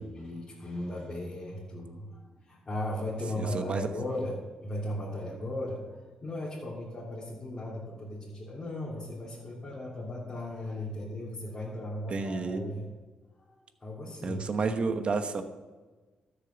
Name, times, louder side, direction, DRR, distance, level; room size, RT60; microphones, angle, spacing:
voice 1, 0.0-12.9 13.4-14.4, left 1 dB, 25° left, -7 dB, 3.2 m, -37 dB
voice 2, 3.4-3.9 12.1-12.7 14.2-15.4, right 4 dB, 40° right, 8 dB, 1.1 m, -30 dB
13.0 x 6.9 x 7.0 m, 1.3 s
cardioid pair, 110°, 3 cm